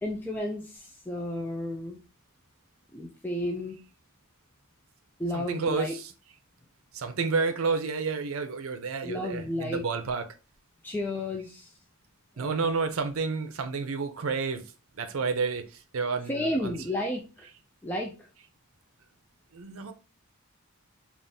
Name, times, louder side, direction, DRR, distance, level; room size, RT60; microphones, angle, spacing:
voice 1, 0.0-2.0 2.9-3.8 5.2-6.0 9.0-9.8 10.8-11.7 12.4-12.7 16.3-17.5 17.8-18.1, left 1 dB, 10° left, 0.4 m, -32 dB
voice 2, 5.3-6.1 6.9-10.3 12.4-14.7 15.0-16.8 19.5-19.9, right 4 dB, 75° right, 0.6 m, -30 dB
3.8 x 2.5 x 3.4 m
head